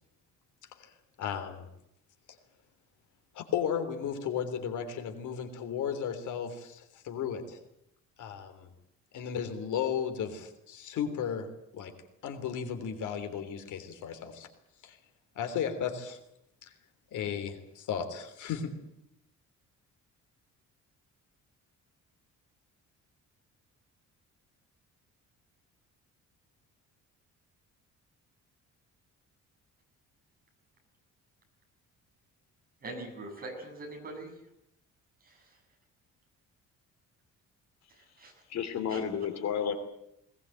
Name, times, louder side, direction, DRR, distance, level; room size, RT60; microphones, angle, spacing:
voice 1, 1.2-1.7 3.4-7.6 8.2-8.7 9.1-11.5 11.7-11.9 12.2-14.5 14.8-15.0 15.4-16.2 17.1-18.7, left 8 dB, 75° left, 6 dB, 3.6 m, -34 dB
voice 2, 32.8-34.3 35.2-35.6 37.9-38.3 38.9-39.0, right 2 dB, 30° right, 2 dB, 6.8 m, -43 dB
voice 3, 38.5-39.7, left 8 dB, 60° left, 7 dB, 3.0 m, -31 dB
21.0 x 19.5 x 9.1 m, 0.80 s
cardioid pair, 170°, 30 cm